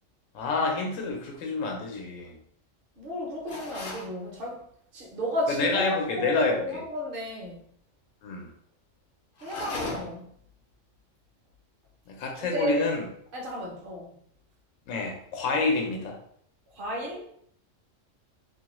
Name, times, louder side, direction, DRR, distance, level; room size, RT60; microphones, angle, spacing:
voice 1, 0.3-2.4 5.5-6.6 8.2-8.5 12.1-13.0 14.9-16.2, left 3 dB, 80° left, 1 dB, 1.0 m, -28 dB
voice 2, 3.0-4.6 4.9-7.6 9.4-10.2 12.3-12.9 13.3-14.2 16.7-17.3, equal, 55° right, -2 dB, 0.7 m, -33 dB
sound 1, 3.5-4.1 9.4-10.3, left 3 dB, 55° left, 0.7 m, -36 dB
2.6 x 2.2 x 2.9 m, 0.67 s
omnidirectional pair, 1.3 m